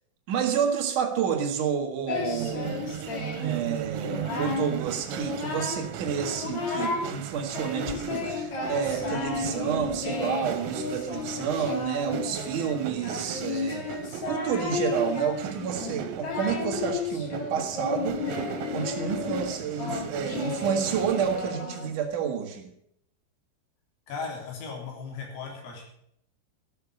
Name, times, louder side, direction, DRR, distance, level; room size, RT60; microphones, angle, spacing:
voice 1, 0.3-2.8 3.4-14.0 14.3-18.2 18.7-22.7, right 7 dB, 60° right, 2 dB, 2.1 m, -29 dB
Singing, 2.1-3.6 3.9-4.7 5.1-5.9 6.2-7.1 7.5-22.0, left 3 dB, 50° left, 2.4 m, -33 dB
sound 1, 2.1-21.5, right 9 dB, 80° right, 3.5 m, -38 dB
voice 2, 24.1-25.8, left 4 dB, 75° left, -1 dB, 5.9 m, -37 dB
13.5 x 6.8 x 8.4 m, 0.73 s
omnidirectional pair, 5.9 m